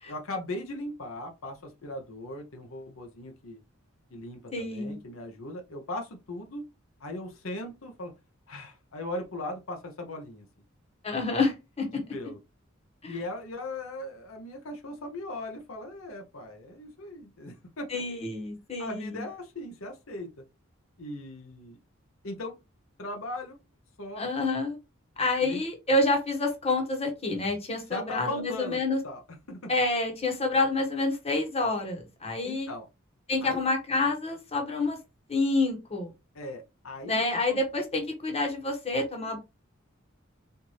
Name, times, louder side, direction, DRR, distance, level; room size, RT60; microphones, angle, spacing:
voice 1, 0.1-3.6 4.1-6.6 7.0-8.1 8.5-10.5 12.1-12.4 13.0-17.9 18.8-20.4 21.0-21.8 22.2-22.6 23.0-23.6 24.0-24.4 25.4-25.6 27.9-28.8 29.0-29.2 29.5-29.7 32.4-32.9 33.4-33.6 36.3-37.6, left 1 dB, 80° left, 0.9 m, -38 dB
voice 2, 4.5-5.0 11.0-11.9 13.0-13.1 17.9-19.2 24.2-24.8 25.2-29.0 29.7-32.7 33.3-35.0 35.3-36.1 37.1-39.4, left 2 dB, 30° left, 1.2 m, -28 dB
4.4 x 2.6 x 3.1 m
head